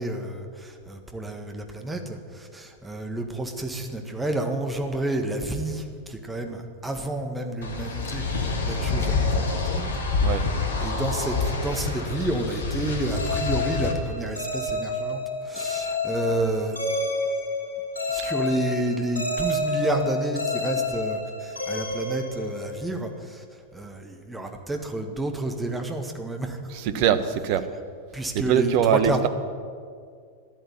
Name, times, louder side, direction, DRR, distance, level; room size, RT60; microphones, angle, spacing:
voice 1, 0.0-9.9 10.8-16.8 18.1-23.4 23.7-26.6 28.1-29.3, right 1 dB, 10° right, 4 dB, 1.7 m, -30 dB
sound 1, 7.6-13.9, left 3 dB, 65° left, 2.2 m, -27 dB
sound 2, 13.2-23.0, left 2 dB, 90° right, 4.5 m, -29 dB
voice 2, 26.7-27.6 28.3-29.3, right 8 dB, 45° right, 11 dB, 1.1 m, -23 dB
13.5 x 11.5 x 9.3 m, 2.1 s
figure-of-eight pair, 90°, 0 cm